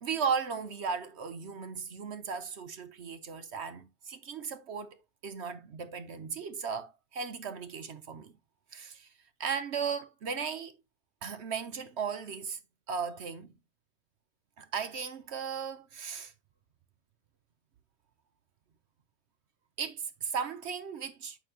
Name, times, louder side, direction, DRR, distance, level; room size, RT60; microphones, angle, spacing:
voice 1, 0.0-8.3 8.7-9.1 9.4-10.8 11.2-12.6 12.9-13.5 14.6-16.3 19.8-21.4, right 6 dB, 55° right, 0.9 m, -36 dB
8.8 x 5.9 x 2.8 m
omnidirectional pair, 1.6 m